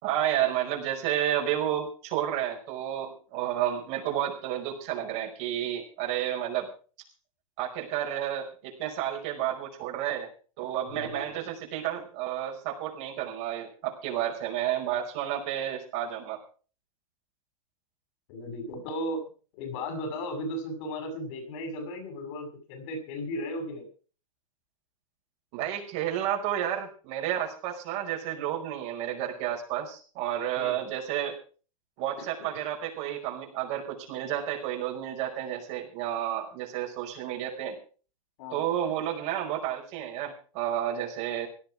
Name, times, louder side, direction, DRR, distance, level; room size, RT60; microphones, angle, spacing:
voice 1, 0.0-6.7 7.6-10.3 10.6-16.4 25.5-31.4 32.0-37.8 38.5-41.5, right 11 dB, 55° right, 0 dB, 5.4 m, -31 dB
voice 2, 10.9-11.3 18.3-19.2 19.5-23.9 30.6-30.8 38.4-38.7, left 1 dB, 60° left, 5 dB, 6.7 m, -35 dB
17.5 x 12.0 x 4.9 m, 0.39 s
hypercardioid pair, 105°, 18 cm